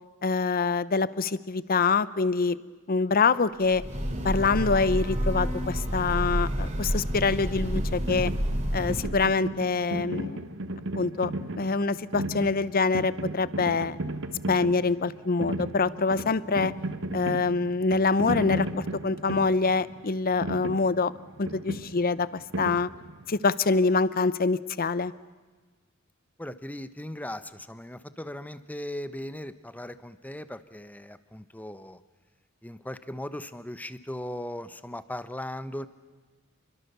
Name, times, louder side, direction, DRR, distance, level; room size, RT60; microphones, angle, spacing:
voice 1, 0.2-2.6 2.9-3.8 4.2-8.3 8.7-10.4 10.9-11.3 11.6-14.0 14.5-16.7 17.1-21.1 21.4-22.9 23.3-25.1, left 4 dB, 45° left, 17 dB, 0.7 m, -25 dB
Breathing / Train, 3.6-9.2, equal, 35° right, 3.6 m, -29 dB
sound 1, 7.7-23.4, right 1 dB, 60° right, 1.2 m, -35 dB
voice 2, 26.4-32.0 32.6-35.9, left 1 dB, 10° left, 12 dB, 1.0 m, -38 dB
29.5 x 22.5 x 6.9 m, 1.3 s
head